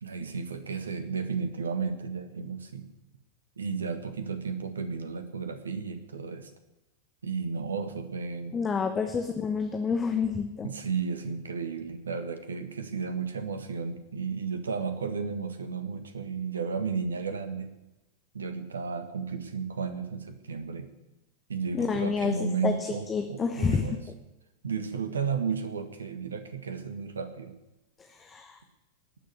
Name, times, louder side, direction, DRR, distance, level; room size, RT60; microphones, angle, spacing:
voice 1, 0.0-2.8 3.6-6.5 7.2-8.6 10.6-17.7 18.3-20.9 21.5-24.0 24.6-27.5, right 5 dB, 70° right, 9 dB, 1.6 m, -33 dB
voice 2, 8.5-10.7 21.8-22.7 23.1-23.9 28.2-28.6, left 5 dB, 20° left, 5 dB, 1.1 m, -28 dB
18.5 x 6.8 x 8.4 m, 0.98 s
figure-of-eight pair, 90°, 0 cm